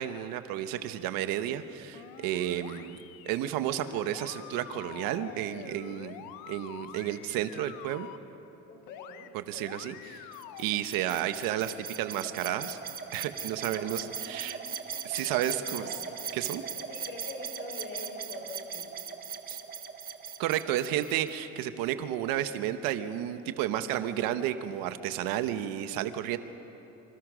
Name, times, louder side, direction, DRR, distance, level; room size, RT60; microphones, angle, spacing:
voice 1, 0.0-3.0 3.3-8.1 9.3-10.3 10.6-12.8 13.1-14.6 15.0-15.9 16.3-16.6 19.5-19.6 20.4-26.4, right 12 dB, 80° right, 10 dB, 1.3 m, -32 dB
sound 1, 1.9-3.4 3.8-8.2 8.9-9.3 9.5-10.6, left 12 dB, 85° left, 1.1 m, -46 dB
voice 2, 8.7-9.3 13.7-16.2 16.7-18.9, left 2 dB, 30° left, 1 dB, 5.2 m, -45 dB
sound 2, 10.3-21.4, right 7 dB, 25° right, 1.4 m, -39 dB
27.0 x 26.5 x 6.3 m, 3.0 s
cardioid pair, 175°, 34 cm